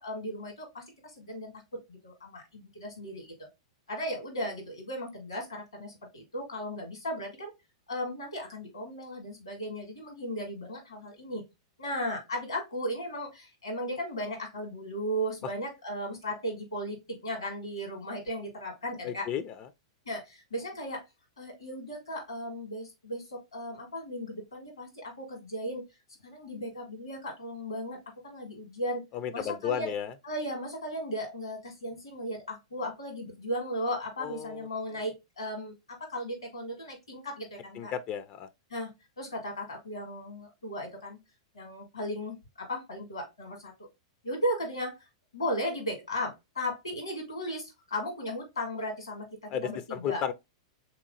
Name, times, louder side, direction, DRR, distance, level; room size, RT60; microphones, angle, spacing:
voice 1, 0.0-1.5 1.9-3.5 3.9-7.5 7.9-11.4 11.8-19.3 20.0-21.0 21.4-25.8 26.2-28.0 28.2-29.0 29.3-29.9 30.2-37.9 38.7-38.9 39.2-41.2 41.5-43.7 44.2-45.0 45.3-50.2, equal, 85° left, 1.7 m, -36 dB
voice 2, 19.0-19.7 29.1-30.1 34.2-34.7 34.9-35.0 37.8-38.5 49.5-50.3, left 9 dB, 40° left, 0.4 m, -33 dB
3.6 x 2.9 x 2.5 m
hypercardioid pair, 100°, 3 cm